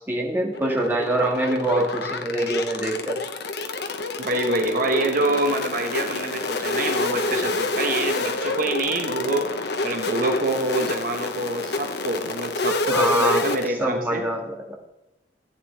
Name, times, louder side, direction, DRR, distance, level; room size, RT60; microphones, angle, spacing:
voice 1, 0.0-3.2 12.9-13.5 13.8-14.7, right 1 dB, 10° right, -1 dB, 1.7 m, -24 dB
Blabber Glitch, 0.5-13.7, left 3 dB, 65° left, 0.9 m, -28 dB
voice 2, 4.2-14.2, right 2 dB, 50° right, 4 dB, 1.1 m, -26 dB
14.5 x 9.3 x 3.3 m, 0.95 s
head